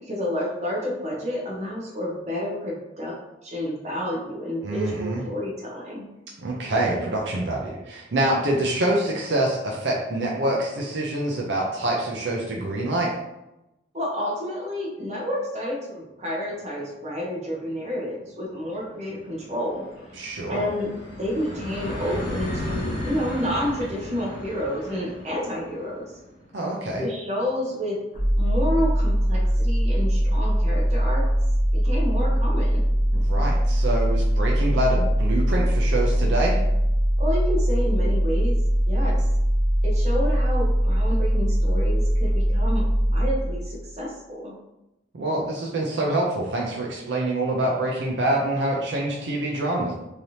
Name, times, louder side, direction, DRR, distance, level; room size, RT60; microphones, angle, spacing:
voice 1, 0.0-3.1 3.4-6.1 13.9-20.9 21.2-26.0 27.0-28.0 28.3-31.2 31.7-32.8 37.2-38.6 38.8-39.3 39.8-44.5, equal, 35° right, -3 dB, 0.8 m, -30 dB
voice 2, 4.6-5.2 6.4-13.1 20.2-20.6 26.5-27.0 33.1-36.6 45.1-49.9, right 1 dB, 70° right, -2 dB, 0.5 m, -26 dB
sound 1, 16.6-16.7 17.0-17.1 17.4-28.8, left 1 dB, 85° left, 1.2 m, -36 dB
sound 2, 28.1-43.9, equal, 35° left, 0.8 m, -21 dB
3.2 x 2.8 x 2.7 m, 0.93 s
head